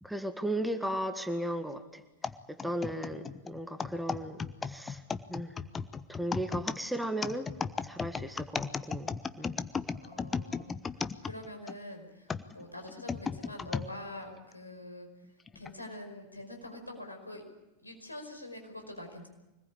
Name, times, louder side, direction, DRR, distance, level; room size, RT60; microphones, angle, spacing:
voice 1, 0.0-2.0 2.5-5.0 5.3-5.5 6.1-7.5 7.8-9.6, right 1 dB, ahead, 7 dB, 1.7 m, -36 dB
sound 1, 2.2-11.8 12.3-13.9 14.5-14.6 15.5-15.7, left 5 dB, 15° left, 0.9 m, -35 dB
voice 2, 9.9-15.3 15.5-17.4 17.8-19.3, left 1 dB, 85° left, 4 dB, 5.2 m, -45 dB
25.0 x 20.0 x 8.6 m, 0.98 s
figure-of-eight pair, 90°, 0 cm